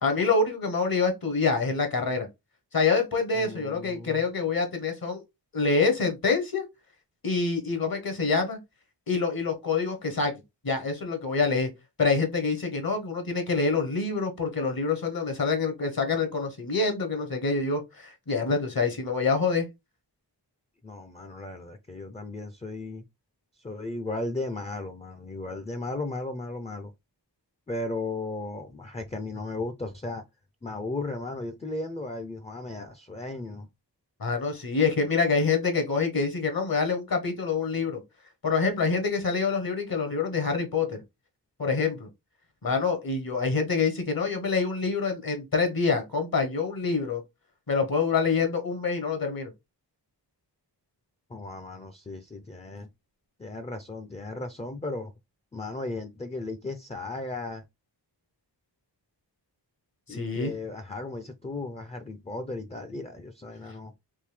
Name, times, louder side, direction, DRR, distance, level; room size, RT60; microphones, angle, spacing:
voice 1, 0.0-2.3 2.7-5.2 5.5-6.6 7.2-8.6 9.1-10.3 10.6-11.7 12.0-19.7 34.2-38.0 38.4-41.0 41.6-42.1 42.6-47.2 47.7-49.5 60.1-60.5, left 4 dB, 55° left, 1.0 m, -26 dB
voice 2, 3.3-4.2 20.8-23.0 23.6-26.9 27.7-30.2 30.6-33.7 51.3-52.9 53.4-55.1 55.5-57.6 60.1-63.9, left 2 dB, 15° left, 0.4 m, -35 dB
3.6 x 2.6 x 3.2 m
wide cardioid pair, 85°, 42 cm